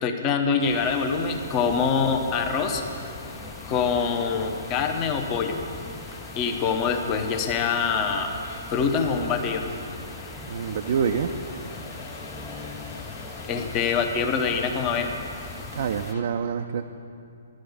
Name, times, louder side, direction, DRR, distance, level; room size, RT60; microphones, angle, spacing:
voice 1, 0.0-3.1 3.7-5.6 6.3-8.3 8.7-9.7 13.5-15.2, left 5 dB, 30° left, 5 dB, 0.9 m, -25 dB
sound 1, 0.6-16.2, left 3 dB, 55° left, 1.6 m, -44 dB
sound 2, 0.6-16.1, left 4 dB, 5° left, 0.4 m, -41 dB
voice 2, 10.5-11.3 15.7-16.8, right 7 dB, 50° right, 5 dB, 0.4 m, -26 dB
11.0 x 6.4 x 8.3 m, 2.6 s
figure-of-eight pair, 125°, 0 cm